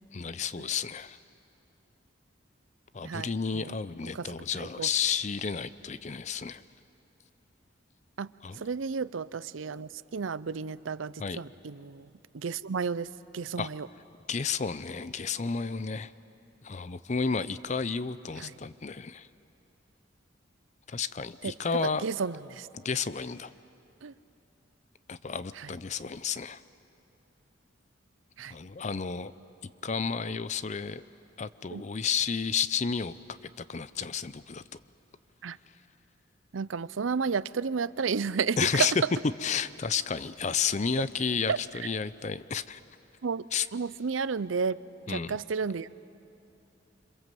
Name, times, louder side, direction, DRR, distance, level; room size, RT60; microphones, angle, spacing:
voice 1, 0.1-1.2 2.9-6.6 8.4-8.6 11.2-11.4 13.6-13.7 14.3-16.1 16.6-19.3 20.9-22.0 22.7-23.5 25.1-26.6 28.5-29.3 29.8-31.0 31.4-33.4 33.7-34.6 38.6-38.9 39.4-42.8 43.5-43.7 45.1-45.3, left 6 dB, 35° left, 15 dB, 0.5 m, -31 dB
voice 2, 3.0-3.8 4.1-4.3 4.6-4.9 8.2-8.3 8.6-13.9 18.4-18.5 21.4-22.7 24.0-24.1 25.6-25.7 28.4-28.5 31.7-31.8 35.4-35.6 36.5-38.9 41.5-41.6 43.2-43.4 43.7-44.8 45.1-45.9, right 5 dB, 90° right, 17 dB, 0.6 m, -32 dB
27.5 x 26.5 x 7.6 m, 2.8 s
head